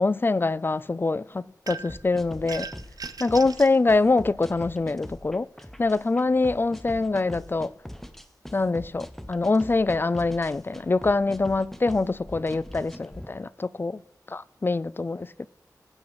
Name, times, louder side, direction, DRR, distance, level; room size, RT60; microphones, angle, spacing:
voice 1, 0.0-2.7 3.2-5.5 5.8-7.7 8.5-14.0 14.3-15.5, left 3 dB, 30° left, 0.3 m, -24 dB
sound 1, 1.7-2.1 2.5-3.8, right 4 dB, 65° right, 0.5 m, -38 dB
sound 2, 1.9-13.3, equal, 5° left, 0.9 m, -42 dB
16.0 x 5.6 x 4.8 m
wide cardioid pair, 75°, 7 cm